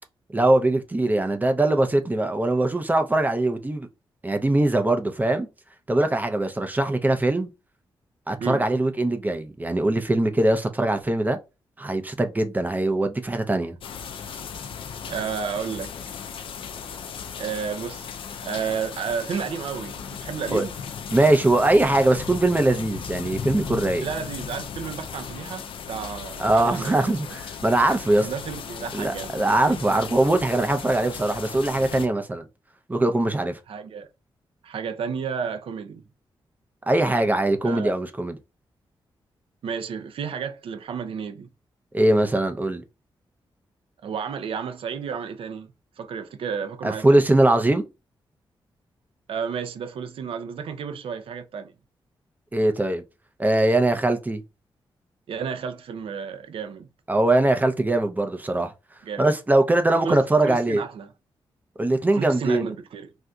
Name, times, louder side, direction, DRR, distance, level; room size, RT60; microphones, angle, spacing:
voice 1, 0.3-3.9 4.2-5.5 5.9-7.5 8.3-11.4 11.8-13.8 20.5-20.6 21.1-24.1 26.4-28.3 28.9-32.4 32.9-33.6 36.9-38.4 41.9-42.8 46.8-47.9 52.5-53.0 53.4-54.4 57.1-58.7 59.2-60.8 61.8-62.7, right 2 dB, 20° right, 0.5 m, -21 dB
sound 1, 13.8-32.1, left 7 dB, 70° left, 0.4 m, -36 dB
voice 2, 15.1-15.9 17.4-18.1 18.4-20.7 24.0-27.2 28.2-29.3 33.7-34.1 34.6-36.0 37.6-37.9 39.6-41.5 44.0-45.7 46.0-47.2 49.3-51.7 55.3-56.9 59.0-59.3 60.0-61.1 62.1-63.1, right 6 dB, 80° right, 0.5 m, -32 dB
3.6 x 2.6 x 2.3 m
wide cardioid pair, 105°, 9 cm